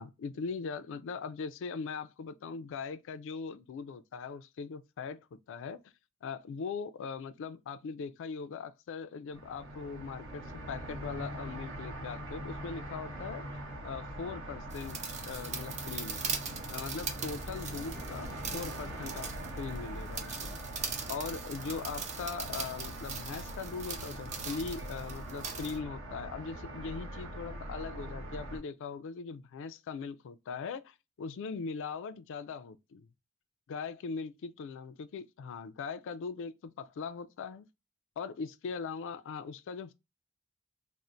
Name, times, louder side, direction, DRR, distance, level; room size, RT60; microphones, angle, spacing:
voice 1, 0.0-5.8 6.2-16.2 16.7-19.3 19.5-20.6 21.1-33.1 33.7-37.7 38.2-39.9, left 5 dB, 60° left, 0.3 m, -40 dB
sound 1, 9.3-28.6, right 1 dB, 60° right, 1.2 m, -42 dB
sound 2, 14.7-25.8, right 5 dB, 35° right, 0.5 m, -41 dB
4.2 x 2.0 x 2.5 m
head